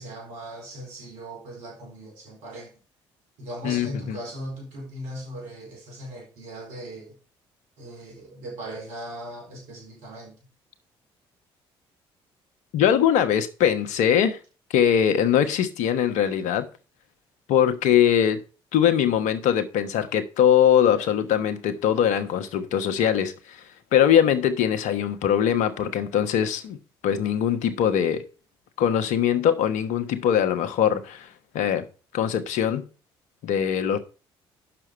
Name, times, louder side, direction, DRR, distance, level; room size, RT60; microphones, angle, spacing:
voice 1, 0.0-2.8 3.4-7.2 7.8-10.4, right 1 dB, 75° right, 4.3 m, -38 dB
voice 2, 3.6-4.2 12.7-14.4 14.7-16.7 17.5-18.4 18.7-23.6 23.9-26.8 27.0-28.2 28.8-31.3 31.5-31.9 32.1-32.8 33.4-34.0, left 9 dB, 70° left, 1.2 m, -22 dB
7.4 x 6.1 x 6.8 m
hypercardioid pair, 55°, 12 cm